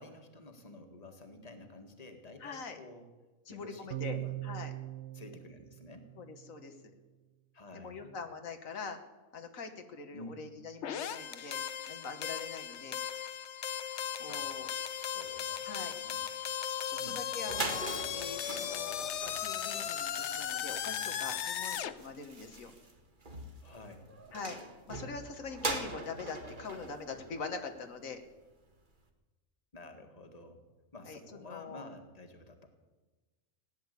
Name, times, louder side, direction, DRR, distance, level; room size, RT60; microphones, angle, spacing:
voice 1, 0.0-3.1 3.5-4.3 5.1-6.1 7.5-8.1 10.1-10.4 14.3-16.2 16.9-17.2 23.6-24.2 29.7-30.6 30.9-32.7, left 2 dB, 30° left, 5 dB, 1.9 m, -51 dB
voice 2, 2.4-2.8 3.5-4.7 6.2-6.9 7.7-9.0 9.3-13.0 14.2-14.7 15.6-15.9 16.9-17.9 18.1-22.7 24.3-24.6 24.9-28.2 31.0-31.9, left 4 dB, 85° left, 6 dB, 1.7 m, -43 dB
sound 1, 3.9-6.5, right 16 dB, 65° right, 0.9 m, -41 dB
sound 2, 10.8-21.9, left 9 dB, 60° left, 1.0 m, -37 dB
sound 3, 17.4-28.2, right 2 dB, 40° right, 1.8 m, -42 dB
17.0 x 10.5 x 8.2 m, 1.2 s
omnidirectional pair, 1.4 m